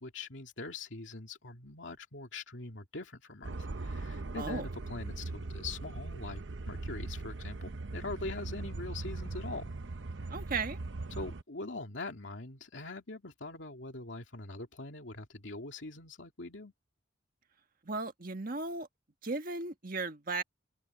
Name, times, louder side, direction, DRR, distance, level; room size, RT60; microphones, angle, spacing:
voice 1, 0.0-9.7 11.1-16.7, left 3 dB, 80° left, 2.6 m, -43 dB
sound 1, 3.4-11.4, right 2 dB, 75° right, 0.8 m, -40 dB
voice 2, 4.4-4.7 10.3-10.8 17.8-18.9 19.2-20.4, right 3 dB, 50° right, 1.6 m, -36 dB
open air
head